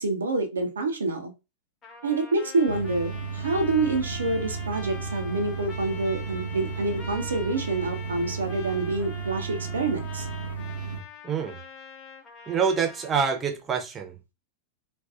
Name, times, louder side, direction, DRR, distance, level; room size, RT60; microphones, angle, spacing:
voice 1, 0.0-1.3 2.0-10.3, right 3 dB, 70° right, 0.3 m, -27 dB
Trumpet, 1.8-13.4, left 3 dB, 25° left, 0.8 m, -44 dB
sound 1, 2.7-11.0, right 5 dB, 75° left, 0.6 m, -34 dB
voice 2, 11.2-11.6 12.5-14.2, right 6 dB, 20° right, 0.5 m, -26 dB
2.4 x 2.2 x 2.4 m
figure-of-eight pair, 90°, 0 cm